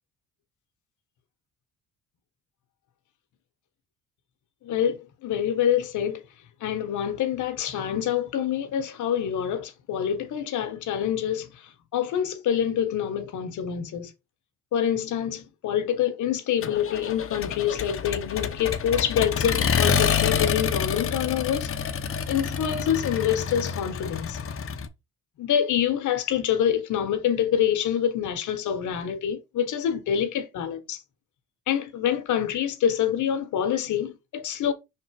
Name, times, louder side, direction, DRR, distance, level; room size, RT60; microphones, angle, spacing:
voice 1, 4.6-6.2 6.6-14.1 14.7-21.7 22.3-24.4 25.4-31.0 31.7-34.7, left 9 dB, 75° left, 1.3 m, -26 dB
Accelerating revving vroom, 16.6-24.9, left 7 dB, 45° left, 1.0 m, -27 dB
5.4 x 3.8 x 4.7 m
cardioid pair, 90°, 30 cm